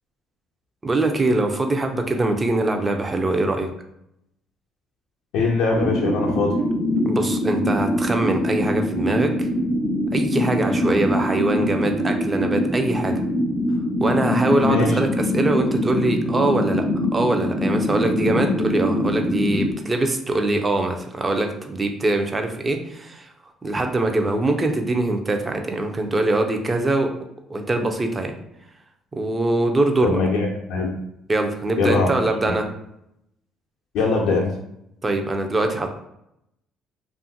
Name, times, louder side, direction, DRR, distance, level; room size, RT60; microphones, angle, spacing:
voice 1, 0.8-3.7 7.1-9.5 10.1-13.2 14.0-16.8 17.1-23.3 23.6-27.2 27.5-28.4 29.1-30.2 31.3-32.7 35.0-35.9, right 2 dB, 25° right, 5 dB, 0.4 m, -23 dB
voice 2, 5.3-6.5 14.7-14.9 30.0-30.9 31.8-32.1 33.9-34.5, left 3 dB, 80° left, -2 dB, 0.4 m, -21 dB
sound 1, 5.7-19.7, left 1 dB, 60° right, 1.2 m, -23 dB
2.7 x 2.4 x 2.6 m, 0.79 s
cardioid pair, 85°, 0 cm